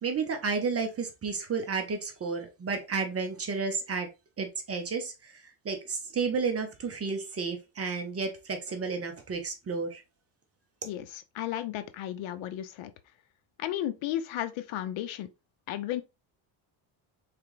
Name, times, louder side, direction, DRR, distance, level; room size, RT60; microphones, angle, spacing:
voice 1, 0.0-4.1 4.4-10.0, right 4 dB, 30° right, 0.8 m, -32 dB
voice 2, 10.8-12.9 13.6-15.3 15.7-16.0, left 12 dB, 70° left, 0.7 m, -34 dB
3.7 x 3.3 x 3.1 m
cardioid pair, 130°, 49 cm